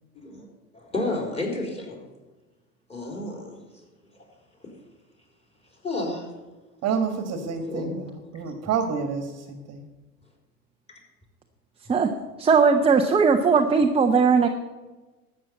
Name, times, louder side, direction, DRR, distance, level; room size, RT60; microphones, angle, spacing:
voice 1, 0.1-0.5 0.7-2.0 2.9-3.8 4.1-4.2 4.6-4.7 5.7-6.3 7.5-8.1 8.4-8.5 10.9-11.0, left 2 dB, 15° left, -1 dB, 4.1 m, -32 dB
voice 2, 6.8-9.8, right 6 dB, 35° right, 6 dB, 1.6 m, -29 dB
voice 3, 12.4-14.5, right 5 dB, 10° right, 4 dB, 0.8 m, -18 dB
12.5 x 7.6 x 8.3 m, 1.2 s
figure-of-eight pair, 90°, 46 cm